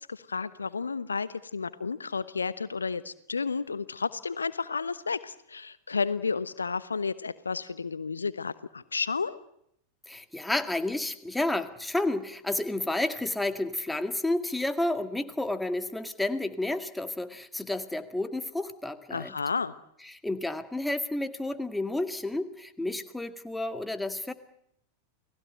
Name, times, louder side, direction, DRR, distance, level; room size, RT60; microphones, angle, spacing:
voice 1, 0.1-9.4 19.1-19.7, left 5 dB, 75° left, 16 dB, 1.1 m, -32 dB
voice 2, 10.1-19.3 20.0-24.3, left 2 dB, 5° left, 9 dB, 2.0 m, -31 dB
29.5 x 19.5 x 9.1 m, 0.74 s
figure-of-eight pair, 90°, 0 cm